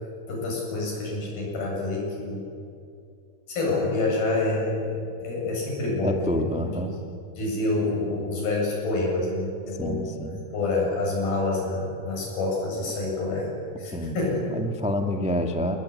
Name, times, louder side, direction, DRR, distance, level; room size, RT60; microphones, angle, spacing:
voice 1, 0.3-2.5 3.5-6.3 6.6-6.7 7.4-10.1 10.5-13.5 13.8-14.4, left 2 dB, 75° left, -2 dB, 9.9 m, -27 dB
voice 2, 6.0-7.0 9.8-10.4 13.9-14.2 14.4-15.8, equal, 10° right, 4 dB, 0.3 m, -28 dB
28.0 x 20.5 x 9.9 m, 2.5 s
omnidirectional pair, 4.4 m